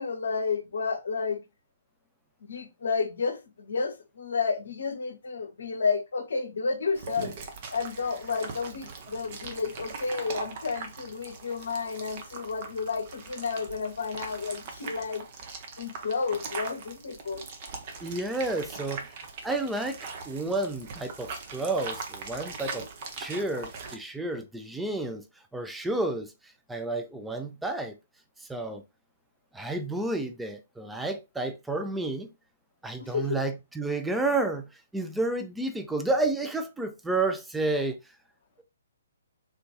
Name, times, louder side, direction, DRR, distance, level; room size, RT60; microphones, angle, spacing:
voice 1, 0.0-1.4 2.4-7.3 7.7-15.2 15.8-17.4 33.0-33.5, left 5 dB, 60° left, 0.8 m, -31 dB
sound 1, 6.9-23.9, right 4 dB, 35° right, 0.7 m, -41 dB
voice 2, 18.0-19.1 19.4-20.0 20.3-22.9 23.2-25.2 25.5-26.3 26.7-27.9 28.5-28.8 29.5-32.3 32.8-38.0, right 2 dB, 5° right, 0.4 m, -30 dB
3.5 x 2.5 x 2.9 m
figure-of-eight pair, 130°, 0 cm